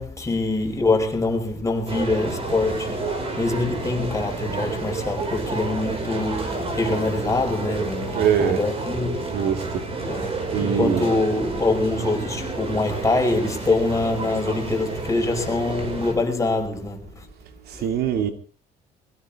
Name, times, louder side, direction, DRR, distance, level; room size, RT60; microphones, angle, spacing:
voice 1, 0.0-3.0 3.4-9.3 10.0-17.3 17.7-17.9, left 2 dB, 20° left, 5.0 m, -24 dB
sound 1, 1.9-16.1, right 3 dB, 35° right, 5.6 m, -30 dB
voice 2, 8.1-8.6 9.3-9.6 10.5-11.1 17.8-18.3, right 8 dB, 70° right, 2.5 m, -22 dB
22.0 x 17.0 x 3.6 m
cardioid pair, 110°, 17 cm